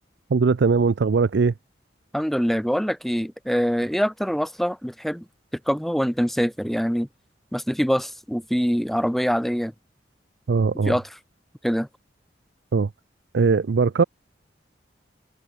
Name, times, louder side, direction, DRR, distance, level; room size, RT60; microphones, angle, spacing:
voice 1, 0.3-1.5 10.5-11.0 12.7-12.9 13.3-14.0, right 4 dB, 65° right, 0.5 m, -20 dB
voice 2, 2.1-5.2 5.7-7.1 7.5-9.7 10.9-11.0 11.6-11.9, equal, ahead, 1.1 m, -24 dB
head